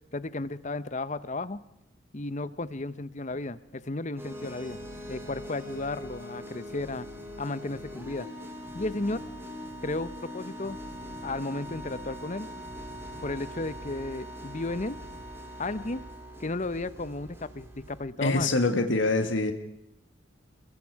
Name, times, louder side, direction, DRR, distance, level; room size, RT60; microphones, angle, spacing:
voice 1, 0.1-1.6 2.1-4.8 5.1-7.1 7.4-8.3 8.7-9.2 9.8-10.8 11.2-12.5 13.2-15.0 15.6-16.0 16.4-18.5, left 2 dB, 40° left, 15 dB, 0.9 m, -34 dB
sound 1, 4.2-18.0, equal, 15° right, 6.0 m, -42 dB
voice 2, 18.2-19.5, left 2 dB, 75° left, 7 dB, 1.8 m, -24 dB
29.0 x 22.0 x 4.8 m, 0.83 s
head